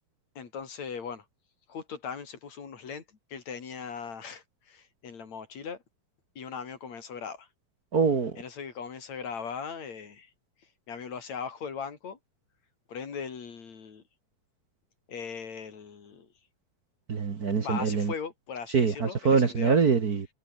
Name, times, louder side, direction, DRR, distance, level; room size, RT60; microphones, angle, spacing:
voice 1, 0.4-1.3 1.7-5.8 6.4-7.5 8.4-10.3 10.9-12.2 12.9-14.0 15.1-16.3 17.6-19.8, left 6 dB, 50° left, 4.6 m, -39 dB
voice 2, 7.9-8.4 17.1-18.1 18.7-20.3, right 5 dB, 55° right, 1.0 m, -24 dB
omnidirectional pair, 4.3 m